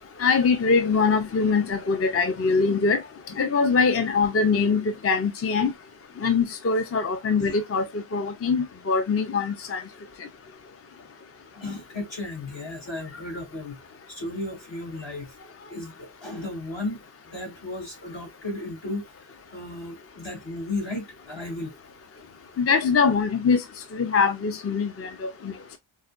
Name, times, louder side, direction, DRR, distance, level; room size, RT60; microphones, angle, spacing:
voice 1, 0.2-3.0 3.4-5.7 6.2-7.8 8.1-9.8 22.6-23.6 23.9-25.3, left 5 dB, 35° left, 0.4 m, -23 dB
voice 2, 11.5-13.8 14.1-15.3 15.7-19.0 19.5-21.7, left 2 dB, 65° left, 2.5 m, -34 dB
4.7 x 2.2 x 2.3 m
wide cardioid pair, 130°, 47 cm